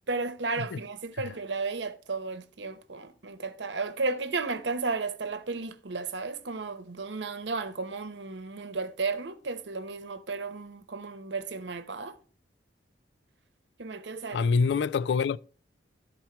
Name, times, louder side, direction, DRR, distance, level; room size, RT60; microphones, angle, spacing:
voice 1, 0.1-12.2 13.8-14.5, right 4 dB, 70° right, 0.9 m, -34 dB
voice 2, 14.3-15.4, left 5 dB, 70° left, 0.4 m, -26 dB
12.0 x 4.5 x 4.3 m
head